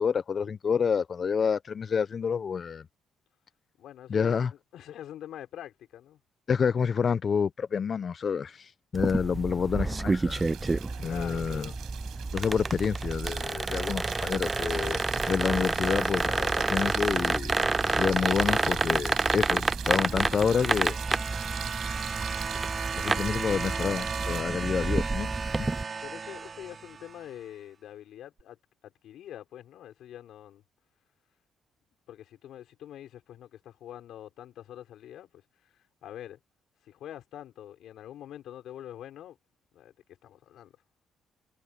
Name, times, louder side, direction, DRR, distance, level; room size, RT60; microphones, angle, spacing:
voice 1, 0.0-2.8 4.1-4.5 6.5-8.6 8.9-10.5 11.0-11.7 12.3-17.7 18.0-21.0 23.0-25.7, left 6 dB, 45° left, 0.5 m, -28 dB
voice 2, 3.8-6.2 11.0-11.8 26.0-28.6 28.8-30.6 32.1-35.4 36.0-36.4 36.8-39.4 39.7-39.9 40.2-40.7, left 11 dB, 75° left, 5.2 m, -45 dB
sound 1, 8.9-25.8, right 3 dB, 20° right, 0.4 m, -29 dB
sound 2, 10.3-24.4, right 12 dB, 80° right, 5.0 m, -42 dB
sound 3, 19.6-27.3 28.4-28.5, right 5 dB, 40° right, 3.4 m, -36 dB
cardioid pair, 90°, 0 cm